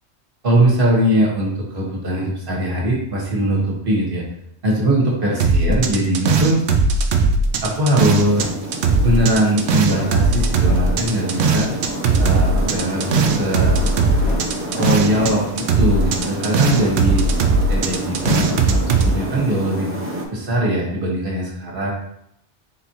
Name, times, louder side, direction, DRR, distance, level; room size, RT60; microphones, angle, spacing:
voice 1, 0.4-4.2 4.6-6.6 7.2-7.4 7.6-8.5 9.0-11.7 12.2-13.8 14.7-17.2 17.7-19.9 20.3-21.9, right 1 dB, 55° right, -3 dB, 1.4 m, -20 dB
sound 1, 5.4-8.5 8.7-15.3 15.6-19.1, right 3 dB, 80° right, 0.9 m, -18 dB
sound 2, 7.5-19.2, left 4 dB, 50° left, 0.4 m, -35 dB
sound 3, 7.9-20.3, right 1 dB, 15° right, 0.5 m, -29 dB
4.2 x 3.7 x 2.9 m, 0.75 s
omnidirectional pair, 1.1 m